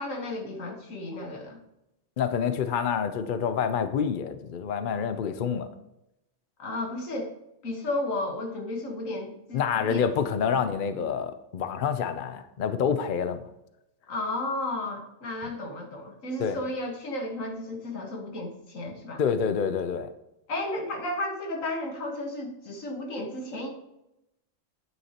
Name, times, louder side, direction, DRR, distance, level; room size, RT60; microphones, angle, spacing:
voice 1, 0.0-1.6 6.6-7.3 7.6-10.1 14.1-19.2 20.5-23.7, left 1 dB, 80° left, 2 dB, 1.8 m, -33 dB
voice 2, 2.2-5.7 9.5-13.4 16.4-16.6 19.2-20.1, left 7 dB, 50° left, 10 dB, 0.6 m, -27 dB
9.5 x 9.3 x 2.9 m, 0.88 s
omnidirectional pair, 1.4 m